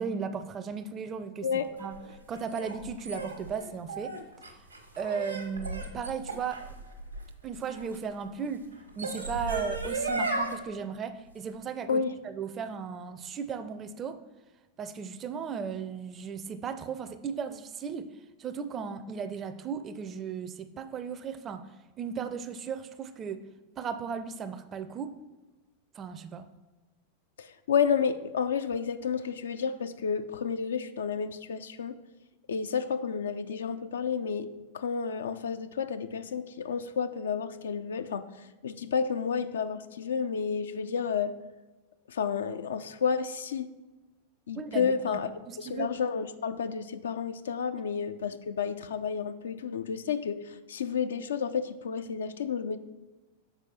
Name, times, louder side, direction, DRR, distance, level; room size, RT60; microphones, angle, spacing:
voice 1, 0.0-1.5 1.8-1.9 2.3-4.1 5.0-6.7 7.4-8.7 9.0-14.2 14.8-18.1 18.4-21.7 22.0-23.4 23.8-25.2 26.0-26.5 44.5-45.2 45.5-45.9, right 6 dB, 25° right, 11 dB, 0.4 m, -36 dB
sound 1, 1.8-8.0 8.7-10.5, right 2 dB, 85° right, 1.1 m, -35 dB
voice 2, 27.4-32.0 32.5-34.5 34.7-41.3 42.1-43.7 44.5-45.3 45.6-52.8, left 6 dB, 65° left, 10 dB, 0.3 m, -31 dB
6.8 x 4.5 x 4.3 m, 1.2 s
figure-of-eight pair, 90°, 0 cm